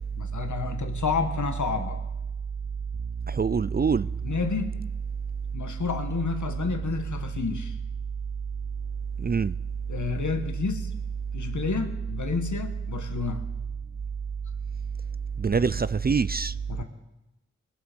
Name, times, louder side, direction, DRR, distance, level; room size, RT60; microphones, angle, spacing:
voice 1, 0.1-2.0 4.2-4.7 5.5-7.8 9.9-10.9 11.3-13.5 16.7-16.8, left 5 dB, 85° left, 1.4 m, -30 dB
voice 2, 3.3-4.1 9.2-9.6 15.4-16.5, right 5 dB, 35° right, 0.4 m, -24 dB
21.0 x 7.9 x 5.3 m
cardioid pair, 40°, 29 cm